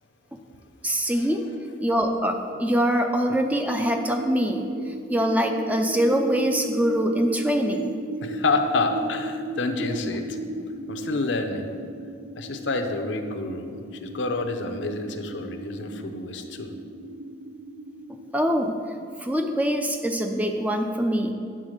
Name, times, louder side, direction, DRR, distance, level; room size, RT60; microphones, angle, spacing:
voice 1, 0.8-1.4 1.8-7.9 18.3-18.7 19.2-21.3, equal, 10° right, 4 dB, 0.4 m, -24 dB
sound 1, 3.6-18.6, right 2 dB, 85° right, 0.6 m, -36 dB
voice 2, 8.2-10.4 10.9-11.7 12.3-16.7, left 3 dB, 75° left, 5 dB, 0.6 m, -28 dB
9.0 x 3.9 x 6.4 m, 2.4 s
head